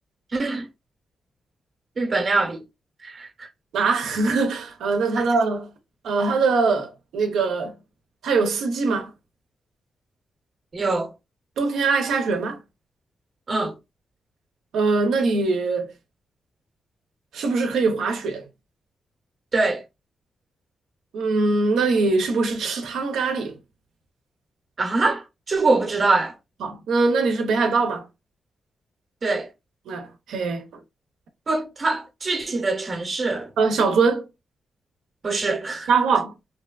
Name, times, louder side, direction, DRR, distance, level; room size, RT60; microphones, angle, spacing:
voice 1, 0.3-0.7 2.0-2.6 3.0-3.5 5.2-5.3 10.7-11.1 13.5-13.8 19.5-19.8 24.8-26.3 29.2-29.5 31.5-33.5 35.2-35.9, right 3 dB, 45° right, 0.8 m, -24 dB
voice 2, 3.7-5.7 6.0-7.7 8.2-9.1 11.6-12.6 14.7-15.9 17.3-18.5 21.1-23.6 26.6-28.1 29.9-30.6 33.6-34.3 35.9-36.3, right 4 dB, 90° right, 0.7 m, -22 dB
3.0 x 2.2 x 2.3 m
cardioid pair, 80°, 0 cm